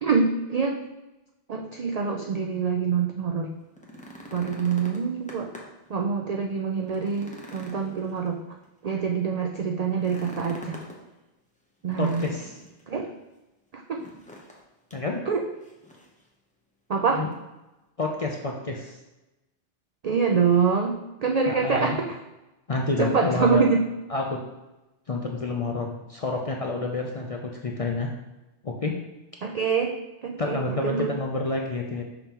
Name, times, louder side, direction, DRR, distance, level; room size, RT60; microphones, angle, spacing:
voice 1, 0.0-0.8 1.5-3.5 4.3-5.5 5.9-8.4 8.8-10.8 11.8-12.3 12.9-13.1 13.7-14.0 15.3-15.4 16.9-17.2 20.0-22.2 23.0-23.8 29.4-29.9 30.2-31.2, right 5 dB, 65° right, 2 dB, 0.4 m, -25 dB
sound 1, 3.6-5.9 6.3-6.4 6.8-8.7 9.9-11.0 11.9-12.8 14.0-14.6 14.9-15.0 15.6-16.2 17.3-17.4, equal, 10° left, 0.7 m, -44 dB
voice 2, 12.0-12.5 14.9-15.2 17.1-17.3 18.0-19.0 21.5-22.0 22.7-23.7 24.1-24.4 25.1-28.1 28.6-28.9 30.4-32.0, left 3 dB, 45° left, 0 dB, 0.4 m, -29 dB
5.9 x 5.5 x 2.9 m, 1.0 s
omnidirectional pair, 1.2 m